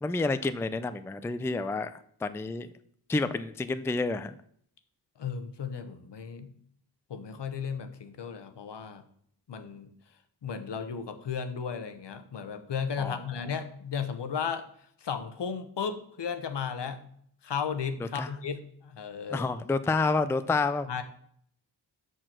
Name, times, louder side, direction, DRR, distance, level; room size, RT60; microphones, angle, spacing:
voice 1, 0.0-2.7 3.1-4.3 13.0-13.2 18.2-18.3 19.3-20.9, left 3 dB, 5° left, 12 dB, 0.4 m, -29 dB
voice 2, 5.2-6.5 7.1-9.0 9.5-9.9 10.4-14.6 15.0-17.0 17.4-19.5 20.9-21.0, left 6 dB, 70° left, 9 dB, 1.0 m, -35 dB
6.7 x 6.2 x 6.0 m, 0.65 s
wide cardioid pair, 85°, 43 cm